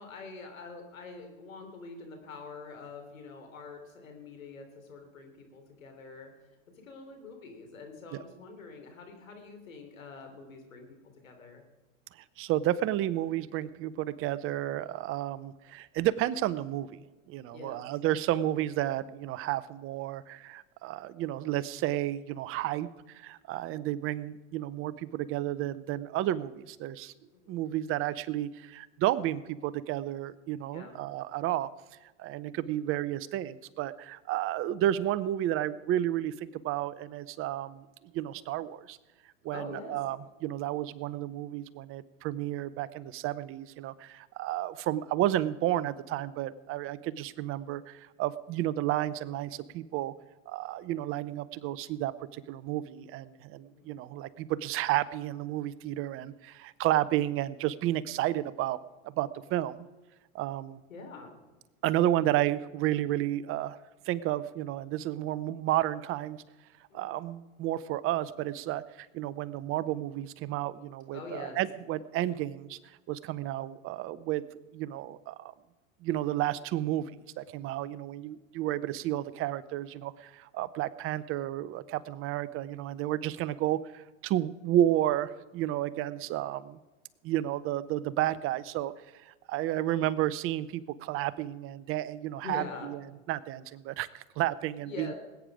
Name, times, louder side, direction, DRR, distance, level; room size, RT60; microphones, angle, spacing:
voice 1, 0.0-6.3 6.7-11.0 11.2-11.6 17.5-17.8 23.7-23.9 27.3-27.7 30.7-31.0 39.5-40.0 47.0-47.1 53.6-54.0 60.9-61.4 66.9-67.2 71.1-71.6 85.9-86.2 92.4-92.9 94.8-95.2, left 4 dB, 85° left, 4 dB, 3.5 m, -45 dB
voice 2, 12.1-17.0 17.3-27.1 27.5-31.7 32.0-37.9 38.1-39.0 39.4-50.1 50.5-58.8 59.0-59.8 60.3-60.8 61.8-63.8 64.0-66.4 66.9-72.8 73.1-74.4 74.7-75.5 76.0-77.1 77.4-86.8 87.2-93.0 93.3-95.1, right 13 dB, 35° right, 17 dB, 0.6 m, -32 dB
19.5 x 9.2 x 4.9 m, 1.2 s
hypercardioid pair, 105°, 39 cm